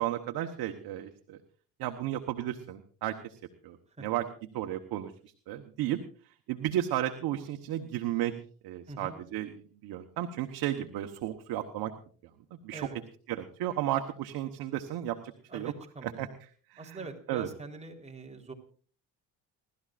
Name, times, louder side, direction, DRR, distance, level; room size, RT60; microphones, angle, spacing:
voice 1, 0.0-1.4 1.8-3.4 3.6-4.3 4.5-5.1 5.5-6.0 6.5-8.3 8.6-9.5 9.8-11.9 12.6-12.9 13.3-15.7 16.0-16.3 16.7-17.0 17.3-17.5, right 12 dB, 75° right, 5 dB, 1.3 m, -33 dB
voice 2, 8.9-9.2 12.7-13.0 15.5-16.2 16.8-18.5, right 3 dB, 15° right, 1 dB, 3.9 m, -44 dB
29.5 x 12.5 x 2.5 m, 0.43 s
cardioid pair, 90°, 38 cm